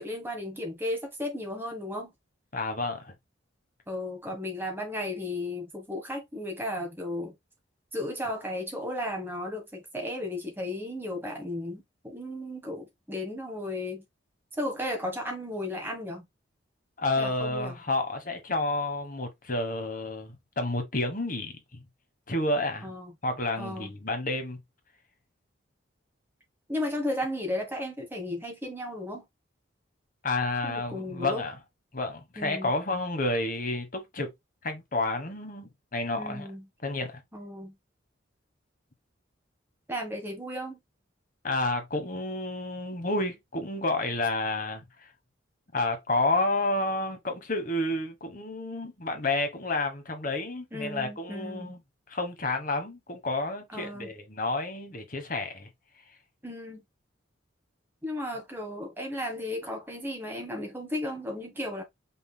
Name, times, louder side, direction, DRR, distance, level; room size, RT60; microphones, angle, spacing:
voice 1, 0.0-2.1 3.9-7.3 7.9-11.8 12.1-14.0 14.6-16.3 17.2-17.7 22.8-23.1 23.6-23.9 26.7-29.3 30.6-31.4 32.4-32.7 36.2-36.6 37.3-37.7 39.9-40.8 50.7-51.7 53.7-54.1 56.4-56.8 58.0-61.8, left 1 dB, 10° right, 1.4 m, -34 dB
voice 2, 2.5-3.1 17.0-21.5 22.3-22.9 23.2-24.6 30.2-31.6 31.9-34.3 34.6-36.5 36.8-37.2 41.4-44.9 45.7-51.8 52.1-55.7, left 2 dB, 45° left, 1.2 m, -30 dB
5.4 x 3.8 x 2.2 m
head